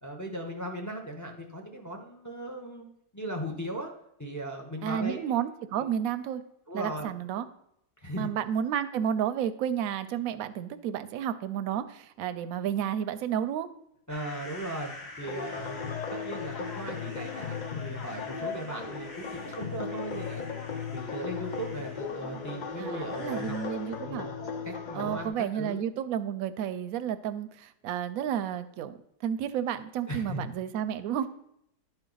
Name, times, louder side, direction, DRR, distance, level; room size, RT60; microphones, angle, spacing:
voice 1, 0.0-2.9 3.1-3.9 4.2-5.2 6.7-7.1 8.0-8.3 14.1-20.6 20.9-23.6 24.0-25.8 30.1-30.4, right 1 dB, 20° left, 2 dB, 0.5 m, -38 dB
voice 2, 4.8-6.4 6.7-7.5 8.2-13.7 22.8-24.3 24.9-29.0 29.2-31.3, right 9 dB, 70° right, 11 dB, 0.9 m, -31 dB
sound 1, 14.1-24.0, left 2 dB, 50° left, 2.0 m, -47 dB
sound 2, 15.2-25.3, left 6 dB, 75° left, 0.4 m, -37 dB
11.0 x 4.5 x 3.9 m, 0.74 s
omnidirectional pair, 1.7 m